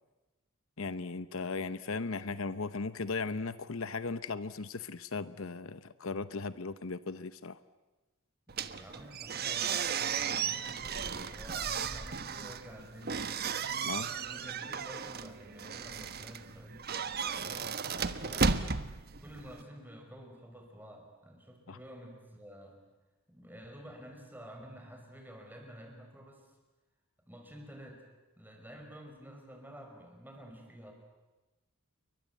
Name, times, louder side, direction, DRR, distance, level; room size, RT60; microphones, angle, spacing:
voice 1, 0.8-7.6 13.8-14.1 21.7-21.8, left 4 dB, 65° left, 14 dB, 0.9 m, -37 dB
sound 1, 8.5-19.6, right 5 dB, 45° right, 1.1 m, -35 dB
voice 2, 8.7-13.7 14.3-16.9 17.3-18.7 19.2-22.8 23.3-26.5 27.3-28.0 28.4-30.9, equal, 10° right, 3 dB, 5.4 m, -50 dB
29.5 x 23.5 x 8.4 m, 1.1 s
head